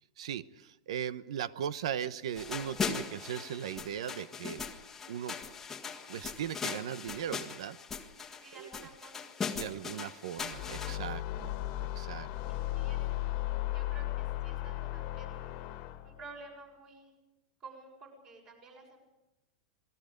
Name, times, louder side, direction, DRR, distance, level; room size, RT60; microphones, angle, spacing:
voice 1, 0.2-4.6 5.1-5.4 6.1-7.8 8.6-8.7 9.5-11.5 11.9-12.6, right 9 dB, 75° right, 15 dB, 1.0 m, -38 dB
sound 1, 2.4-11.0, left 6 dB, 10° left, 1.6 m, -39 dB
voice 2, 8.4-9.3 12.5-13.0 13.7-15.7 16.0-17.1 17.6-19.0, right 3 dB, 30° right, 2 dB, 6.5 m, -52 dB
sound 2, 10.5-16.2, left 15 dB, 35° left, 1.8 m, -36 dB
27.5 x 20.0 x 5.2 m, 0.96 s
supercardioid pair, 165°, 3 cm